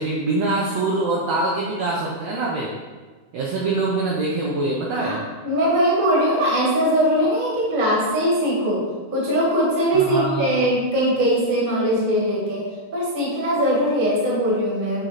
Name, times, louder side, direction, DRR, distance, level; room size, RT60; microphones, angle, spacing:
voice 1, 0.0-2.7 3.3-5.2 9.9-10.7, right 2 dB, 70° right, -3 dB, 1.6 m, -24 dB
voice 2, 5.4-12.6 12.9-15.0, equal, 25° right, -5 dB, 1.3 m, -21 dB
8.0 x 3.7 x 4.3 m, 1.4 s
omnidirectional pair, 3.8 m